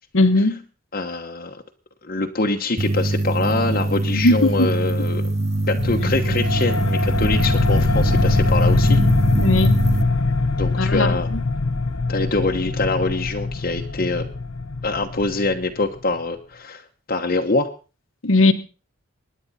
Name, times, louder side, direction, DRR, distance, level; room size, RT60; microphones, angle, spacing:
voice 1, 0.1-0.6 4.1-4.7 6.0-6.4 9.4-9.8 10.8-11.4 18.2-18.5, left 2 dB, 70° left, 1.3 m, -19 dB
voice 2, 0.9-1.6 2.0-5.2 5.7-9.0 10.6-11.3 12.1-14.3 14.8-16.8 17.1-17.7, left 3 dB, 45° left, 1.1 m, -24 dB
sound 1, 2.8-10.0, right 2 dB, 30° right, 1.1 m, -23 dB
sound 2, 5.8-16.0, left 3 dB, 90° left, 0.9 m, -22 dB
24.5 x 10.5 x 4.2 m
head